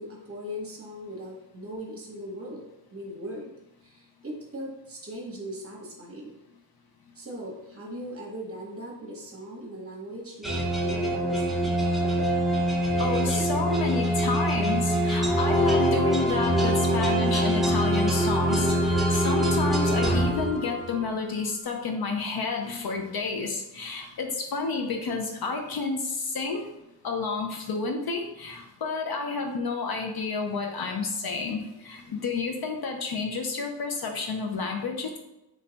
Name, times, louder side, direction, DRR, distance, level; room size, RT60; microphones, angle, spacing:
voice 1, 0.0-2.6 2.9-3.5 3.8-6.4 7.1-11.8, equal, 30° right, -2 dB, 0.9 m, -39 dB
sound 1, 10.4-21.1, right 1 dB, ahead, 0.5 m, -24 dB
voice 2, 13.0-26.6 27.0-35.2, left 4 dB, 55° left, 2 dB, 0.5 m, -30 dB
3.2 x 2.2 x 3.9 m, 0.92 s
wide cardioid pair, 135°, 44 cm